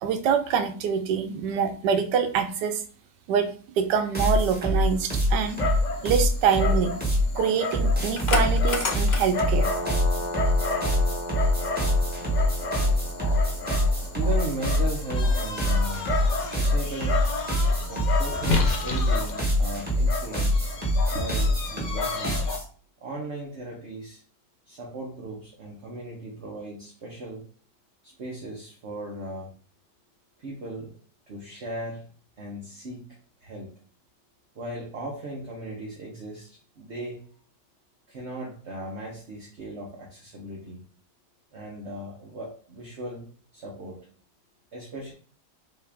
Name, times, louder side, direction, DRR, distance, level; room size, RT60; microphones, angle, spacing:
voice 1, 0.0-2.8 3.3-3.5 3.8-5.6 6.0-7.0 7.4-9.7, right 7 dB, 85° right, 7 dB, 1.3 m, -25 dB
sound 1, 4.1-7.3 7.7-22.6, left 1 dB, 5° right, 1.3 m, -24 dB
Dog, 4.8-22.6, left 3 dB, 60° left, 0.4 m, -31 dB
voice 2, 14.1-17.2 17.9-20.6 21.1-22.4 23.0-24.2 24.7-27.4 28.0-29.5 30.4-30.9 31.3-32.1 32.4-33.1 33.4-33.7 34.5-37.2 38.1-40.8 41.5-44.0 44.7-45.1, right 1 dB, 45° right, -3 dB, 1.1 m, -37 dB
5.8 x 2.6 x 3.5 m, 0.43 s
omnidirectional pair, 1.8 m